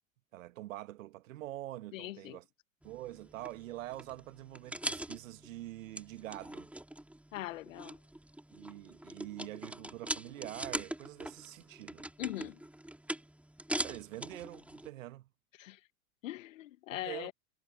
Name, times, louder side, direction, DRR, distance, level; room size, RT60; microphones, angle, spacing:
voice 1, 0.3-2.5 2.8-6.7 8.5-12.1 13.8-15.3 16.9-17.3, right 15 dB, 65° right, 1.7 m, -45 dB
voice 2, 1.9-2.4 7.3-8.0 12.2-12.6 15.6-15.8 16.2-17.3, left 15 dB, 70° left, 1.4 m, -41 dB
sound 1, 2.8-14.9, right 1 dB, 5° right, 3.7 m, -43 dB
hypercardioid pair, 90°, 41 cm